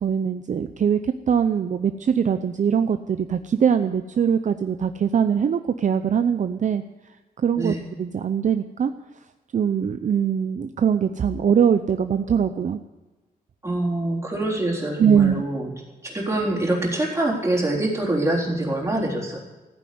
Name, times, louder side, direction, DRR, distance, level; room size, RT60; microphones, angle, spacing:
voice 1, 0.0-6.8 7.4-8.9 9.5-12.8 15.0-15.4, right 7 dB, 50° right, 9 dB, 0.6 m, -22 dB
voice 2, 13.6-15.7 16.0-19.4, right 1 dB, 20° right, -2 dB, 3.8 m, -25 dB
15.0 x 9.4 x 9.4 m, 1.2 s
wide cardioid pair, 140°, 16 cm